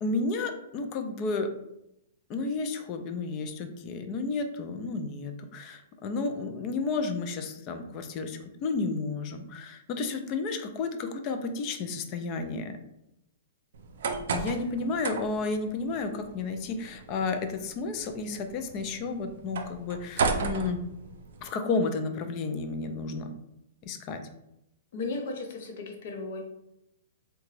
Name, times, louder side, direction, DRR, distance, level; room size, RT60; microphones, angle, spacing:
voice 1, 0.0-1.5 2.3-12.8 14.3-20.8 21.4-23.3 23.8-24.2, left 3 dB, 30° left, 7 dB, 0.4 m, -32 dB
sound 1, 13.7-21.5, right 4 dB, 70° right, 0.4 m, -35 dB
voice 2, 24.9-26.5, left 3 dB, 60° left, 2 dB, 0.7 m, -35 dB
3.8 x 2.2 x 3.1 m, 0.83 s
hypercardioid pair, 160°, 0 cm